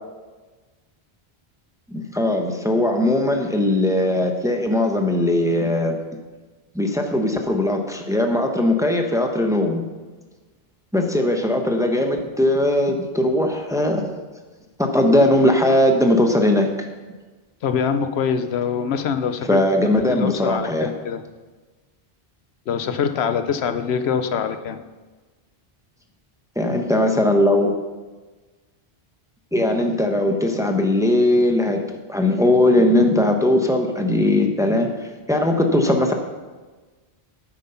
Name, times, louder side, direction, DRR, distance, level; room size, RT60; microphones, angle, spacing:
voice 1, 1.9-6.0 6.7-9.8 10.9-14.1 14.8-16.7 19.5-20.9 26.6-27.7 29.5-31.8 32.1-34.9 35.3-36.1, left 1 dB, 5° right, 3 dB, 0.9 m, -19 dB
voice 2, 17.6-19.6 20.0-21.2 22.7-24.8, left 7 dB, 85° left, 10 dB, 0.9 m, -24 dB
9.2 x 7.9 x 5.7 m, 1.3 s
omnidirectional pair, 1.1 m